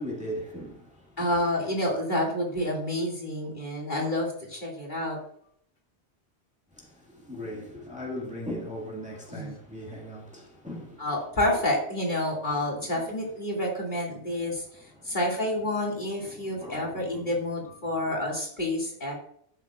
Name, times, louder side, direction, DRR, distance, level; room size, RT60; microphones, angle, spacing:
voice 1, 0.0-1.3 6.7-11.1 11.5-11.6 12.6-12.7 13.0-13.2 13.5-13.6 14.3-15.2 16.1-17.4 18.0-18.2, equal, 5° right, 1.9 m, -39 dB
voice 2, 1.2-5.2 9.3-9.5 11.0-14.6 15.0-19.1, left 1 dB, 45° left, 2.5 m, -29 dB
12.0 x 8.6 x 2.4 m
omnidirectional pair, 1.2 m